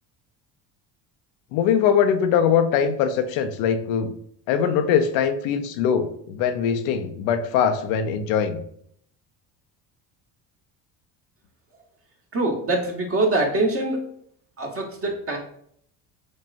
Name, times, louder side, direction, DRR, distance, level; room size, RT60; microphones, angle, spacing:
voice 1, 1.5-4.1 4.5-8.6, left 7 dB, 85° left, 8 dB, 0.6 m, -22 dB
voice 2, 12.3-14.0 14.6-15.4, right 2 dB, 30° right, 2 dB, 1.1 m, -24 dB
6.3 x 2.3 x 2.5 m, 0.66 s
supercardioid pair, 100°, 43 cm